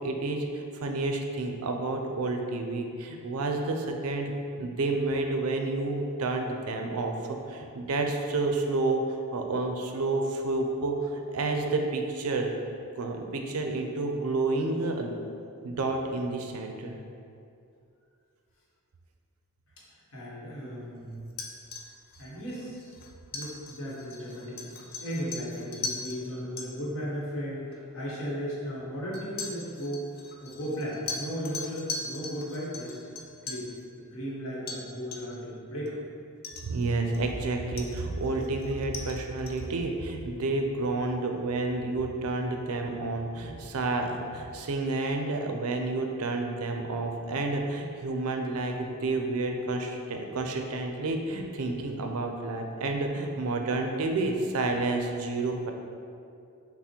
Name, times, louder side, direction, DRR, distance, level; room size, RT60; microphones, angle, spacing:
voice 1, 0.0-7.1 7.5-12.5 13.0-15.1 15.6-17.0 36.6-55.7, right 2 dB, 75° right, 3 dB, 0.5 m, -30 dB
voice 2, 20.1-21.2 22.2-22.8 23.3-30.0 30.4-33.7 34.0-36.0, equal, 65° left, -6 dB, 1.1 m, -36 dB
sound 1, 21.3-26.2 26.6-26.7 27.7-27.8 29.1-33.7 34.7-34.8 35.1-35.4 35.9-36.0 36.4-37.4 37.8-39.7, left 4 dB, 45° left, 0.5 m, -40 dB
5.7 x 2.1 x 4.3 m, 2.5 s
head